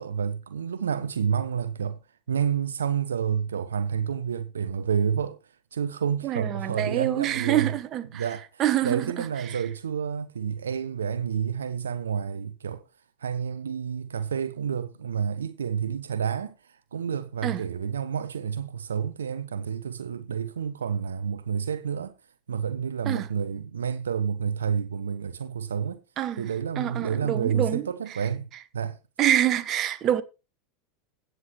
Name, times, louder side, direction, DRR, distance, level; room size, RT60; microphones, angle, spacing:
voice 1, 0.0-2.0 2.3-5.4 5.7-7.7 8.1-12.8 13.2-22.1 22.5-26.0 26.4-29.0, right 7 dB, 80° right, 0.6 m, -29 dB
voice 2, 6.2-8.2 8.6-9.6 17.4-17.6 23.1-23.3 26.2-26.5 26.8-27.8 29.2-30.2, right 11 dB, 40° right, 1.0 m, -26 dB
16.5 x 7.8 x 3.0 m
figure-of-eight pair, 85°, 0 cm